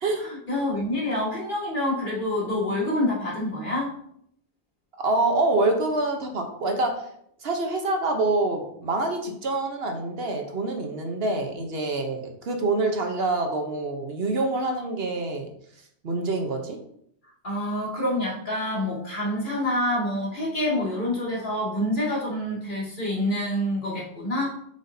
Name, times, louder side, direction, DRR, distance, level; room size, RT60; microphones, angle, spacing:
voice 1, 0.3-3.9 17.4-24.5, left 1 dB, 50° left, -6 dB, 2.5 m, -27 dB
voice 2, 5.0-7.1 7.4-15.5 16.0-16.8, right 2 dB, 65° right, 4 dB, 1.1 m, -26 dB
7.9 x 5.0 x 2.7 m, 0.70 s
omnidirectional pair, 1.1 m